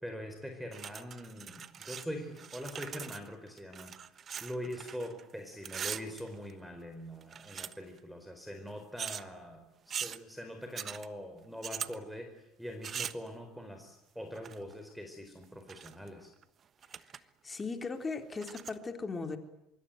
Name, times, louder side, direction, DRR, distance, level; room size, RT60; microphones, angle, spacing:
voice 1, 0.0-4.0 4.4-16.3, equal, ahead, 6 dB, 4.5 m, -43 dB
sound 1, 0.7-2.1 2.3-5.2 5.5-6.8 7.2-8.0 9.0-9.2 9.9-10.2 10.7-11.1 11.6-12.0 12.8-13.3 14.3-14.7 15.4-16.1 16.4-16.5 16.8-17.2 17.6-17.7 18.3-18.7, right 8 dB, 40° right, 1.3 m, -41 dB
voice 2, 17.4-19.4, left 4 dB, 25° left, 6 dB, 3.9 m, -37 dB
25.0 x 23.5 x 9.2 m, 0.84 s
hypercardioid pair, 80°, 0 cm